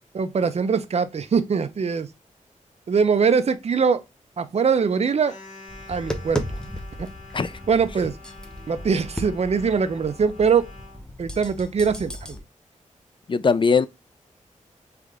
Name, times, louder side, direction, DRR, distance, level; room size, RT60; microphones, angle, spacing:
voice 1, 0.1-2.1 2.9-4.0 4.4-5.4 5.9-6.6 7.0-7.1 7.7-8.1 8.7-10.7 11.2-12.4, right 6 dB, 50° right, 0.6 m, -22 dB
sound 1, 5.2-11.0, left 3 dB, 60° left, 2.0 m, -46 dB
Tap, 5.7-12.4, equal, 5° left, 0.8 m, -35 dB
voice 2, 13.3-13.9, left 5 dB, 40° left, 0.4 m, -20 dB
3.7 x 3.5 x 3.4 m
wide cardioid pair, 90°, 14 cm